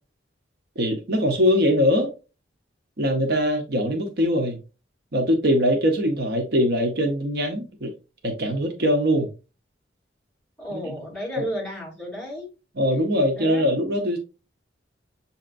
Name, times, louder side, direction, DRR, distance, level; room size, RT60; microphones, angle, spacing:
voice 1, 0.8-2.1 3.0-4.6 5.1-7.9 8.2-9.3 10.7-10.9 11.4-11.5 12.8-14.2, equal, 60° right, 0.8 m, -22 dB
voice 2, 10.6-12.5 13.3-13.6, equal, 5° left, 2.5 m, -33 dB
6.6 x 2.8 x 2.5 m
head